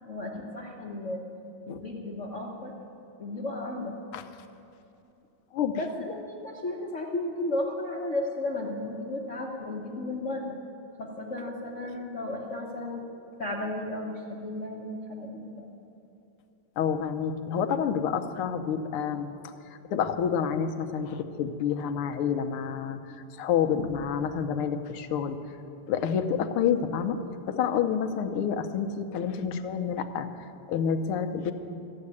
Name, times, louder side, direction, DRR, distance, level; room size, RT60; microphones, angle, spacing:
voice 1, 0.0-1.2 1.7-2.7 3.2-4.0 5.8-10.6 11.0-13.1 13.4-15.7, left 2 dB, 45° left, -2 dB, 1.1 m, -34 dB
voice 2, 16.8-19.3 19.9-23.0 23.4-25.4 25.9-27.2 27.5-30.3 30.7-31.5, left 7 dB, 80° left, 7 dB, 1.7 m, -28 dB
14.0 x 7.7 x 9.6 m, 2.9 s
omnidirectional pair, 2.4 m